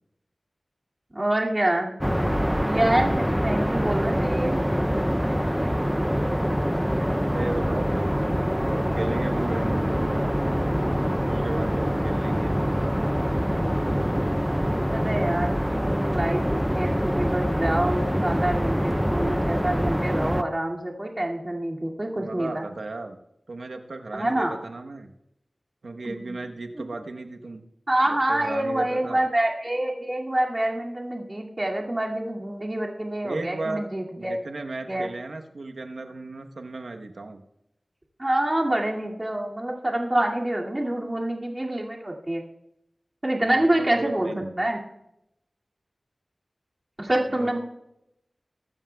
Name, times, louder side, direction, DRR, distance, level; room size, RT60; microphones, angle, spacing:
voice 1, 1.1-2.2 2.6-4.6 14.9-22.6 24.1-24.5 26.0-26.5 26.7-26.8 27.9-34.3 34.9-35.1 38.2-42.4 43.2-44.8 47.0-47.6, right 1 dB, 30° right, -2 dB, 2.3 m, -26 dB
sound 1, 2.0-20.4, equal, 5° right, 0.5 m, -25 dB
voice 2, 7.3-8.1 8.7-10.3 11.2-13.0 22.2-23.2 23.5-25.1 25.8-27.6 28.3-29.2 33.2-33.8 34.2-37.4 43.4-44.6 47.3-47.6, right 2 dB, 85° right, 4 dB, 1.0 m, -35 dB
22.5 x 12.5 x 2.3 m, 0.83 s
wide cardioid pair, 55°, 0 cm